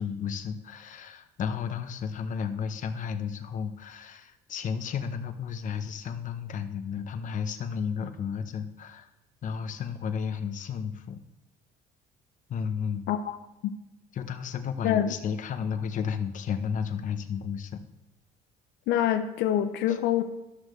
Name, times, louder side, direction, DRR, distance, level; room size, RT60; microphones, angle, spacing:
voice 1, 0.0-9.1 9.4-11.2 12.5-13.0 14.1-17.8 19.9-20.0, left 7 dB, 50° left, 8 dB, 0.8 m, -33 dB
voice 2, 18.9-20.2, left 11 dB, 85° left, 8 dB, 0.6 m, -25 dB
13.0 x 6.4 x 3.2 m, 0.95 s
cardioid pair, 110°, 17 cm